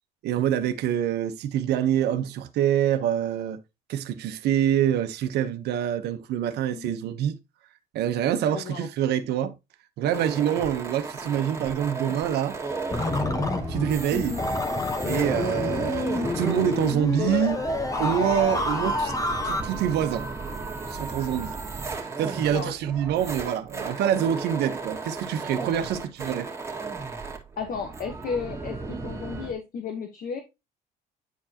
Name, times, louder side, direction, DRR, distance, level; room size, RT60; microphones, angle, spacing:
voice 1, 0.2-3.6 3.9-7.4 7.9-9.5 10.0-12.6 13.3-14.4 15.0-17.6 18.0-19.1 19.4-20.3 20.9-21.6 21.9-26.5, right 10 dB, 75° right, 1.0 m, -26 dB
voice 2, 8.5-8.9 22.5-22.8 27.6-30.4, left 6 dB, 55° left, 1.2 m, -33 dB
sound 1, 10.1-29.5, right 4 dB, 15° right, 2.0 m, -35 dB
sound 2, 12.9-19.6, left 2 dB, 20° left, 1.1 m, -28 dB
9.3 x 4.6 x 2.9 m
cardioid pair, 110°, 17 cm